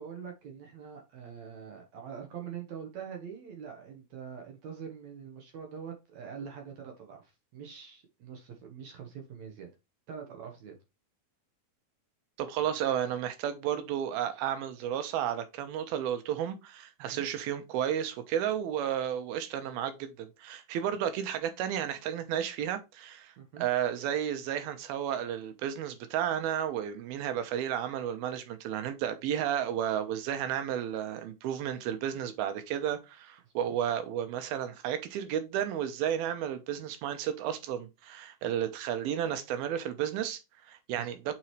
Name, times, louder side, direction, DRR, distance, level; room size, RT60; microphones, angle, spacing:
voice 1, 0.0-9.7 10.1-10.8 17.0-17.2 23.4-23.7 33.6-33.7 41.0-41.1, right 7 dB, 60° right, 2.1 m, -44 dB
voice 2, 12.4-41.3, right 10 dB, 85° right, 2.8 m, -32 dB
7.4 x 5.0 x 3.1 m
omnidirectional pair, 4.4 m